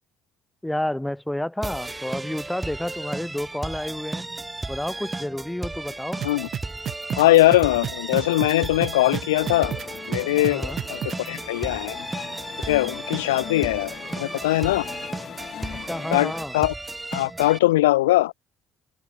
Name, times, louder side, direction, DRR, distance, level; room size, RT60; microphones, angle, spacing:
voice 1, 0.6-4.2 4.7-6.2 10.5-10.8 15.9-16.5, left 1 dB, 5° left, 1.2 m, -30 dB
sound 1, 1.6-17.6, right 2 dB, 20° right, 2.4 m, -34 dB
sound 2, 6.2-11.3, right 10 dB, 55° right, 4.0 m, -31 dB
voice 2, 7.2-9.7 10.1-12.0 12.7-13.9 14.2-14.9 16.1-16.7 17.1-18.3, left 17 dB, 85° left, 0.4 m, -21 dB
sound 3, 9.4-16.5, left 9 dB, 55° left, 3.2 m, -39 dB
open air
hypercardioid pair, 55°, 0 cm